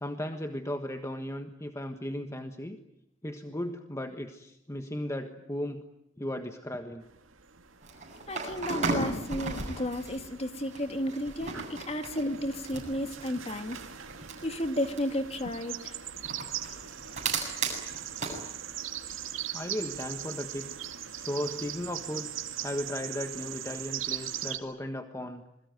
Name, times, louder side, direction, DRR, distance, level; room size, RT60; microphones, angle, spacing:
voice 1, 0.0-2.8 3.2-5.8 6.2-7.1 19.5-20.7 21.2-22.3 22.6-25.4, left 1 dB, 15° left, 6 dB, 1.4 m, -36 dB
sound 1, 7.1-24.6, right 10 dB, 90° right, 2.2 m, -40 dB
sound 2, 7.8-10.2 10.6-15.2 16.2-18.4, right 3 dB, 40° right, 7.8 m, -35 dB
voice 2, 8.3-13.8 14.4-15.9, left 1 dB, 30° left, 7 dB, 2.4 m, -33 dB
27.5 x 22.0 x 9.3 m, 0.81 s
head